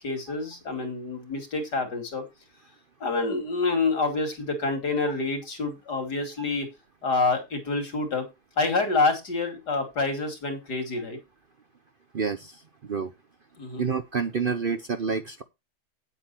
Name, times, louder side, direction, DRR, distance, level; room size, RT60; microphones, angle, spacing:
voice 1, 0.0-2.2 3.0-6.7 7.0-8.3 8.6-11.2 13.6-13.8, left 3 dB, 90° left, 3.4 m, -27 dB
voice 2, 12.1-12.6 12.9-13.1 13.8-15.4, right 5 dB, 50° right, 0.7 m, -28 dB
9.3 x 8.1 x 4.3 m
omnidirectional pair, 1.7 m